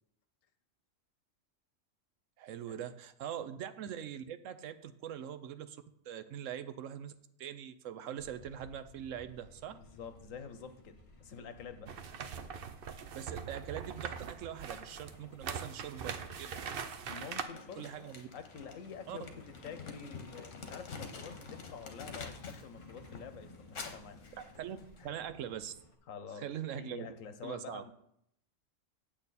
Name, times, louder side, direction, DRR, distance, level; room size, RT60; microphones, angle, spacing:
voice 1, 2.4-5.8 6.1-7.1 7.4-9.8 13.1-16.5 17.8-18.3 19.1-19.2 24.4-24.8 25.0-25.7 26.4-27.1 27.4-27.8, right 9 dB, 75° right, 12 dB, 1.0 m, -42 dB
Truck, 8.2-25.9, left 2 dB, 30° left, 1.0 m, -59 dB
voice 2, 9.7-11.9 17.0-19.3 19.6-24.2 25.0-25.1 26.1-26.5 26.7-27.9, left 6 dB, 85° left, 10 dB, 1.2 m, -48 dB
sound 1, 11.9-17.4, right 7 dB, 55° right, 0.7 m, -42 dB
Crumpling crinkling, 17.3-22.7 23.0-25.0, left 4 dB, 70° left, 1.5 m, -48 dB
8.7 x 8.1 x 4.1 m, 0.73 s
omnidirectional pair, 1.3 m